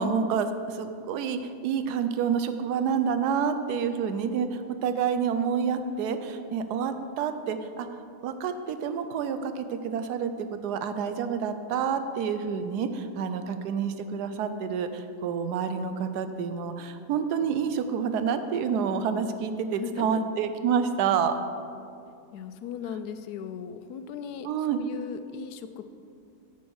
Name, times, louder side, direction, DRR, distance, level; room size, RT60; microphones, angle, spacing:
voice 1, 0.0-21.4 24.4-24.8, right 6 dB, 90° right, 9 dB, 1.2 m, -28 dB
voice 2, 19.6-20.2 22.3-25.8, left 8 dB, 80° left, 10 dB, 1.1 m, -38 dB
9.2 x 7.0 x 4.7 m, 2.5 s
omnidirectional pair, 1.7 m